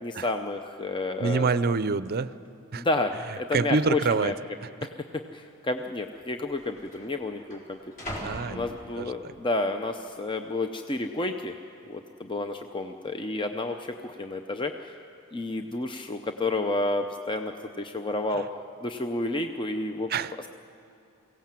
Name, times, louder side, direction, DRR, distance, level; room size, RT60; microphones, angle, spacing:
voice 1, 0.0-1.5 2.7-4.3 4.8-5.0 5.3-7.8 8.5-11.5 11.9-15.0 15.3-18.4 18.8-20.1, left 2 dB, 25° left, 6 dB, 0.6 m, -30 dB
sound 1, 0.9-1.3 2.0-2.1 2.9-3.4 3.7-3.8 4.7-4.8 5.8-5.9 6.1-9.4 9.9-10.3, equal, 40° left, 4.2 m, -42 dB
voice 2, 1.2-2.3 2.7-2.8 3.5-4.3 4.6-4.7 8.2-9.3 18.3-18.4 20.1-20.5, right 4 dB, 45° right, 15 dB, 0.5 m, -27 dB
23.5 x 17.0 x 7.5 m, 2.9 s
head